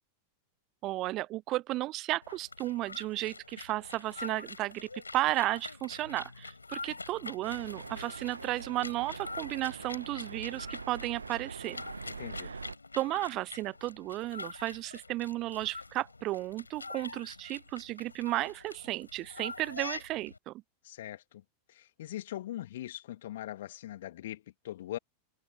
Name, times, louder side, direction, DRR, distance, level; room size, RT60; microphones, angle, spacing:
voice 1, 0.8-11.8 12.9-20.5, right 17 dB, 35° right, 0.7 m, -34 dB
sound 1, 2.2-20.4, left 3 dB, 80° left, 6.3 m, -45 dB
sound 2, 7.4-12.8, right 5 dB, 75° right, 1.9 m, -44 dB
voice 2, 12.0-12.5 20.8-21.4 21.7-25.0, left 13 dB, 55° left, 2.5 m, -41 dB
figure-of-eight pair, 90°, 0 cm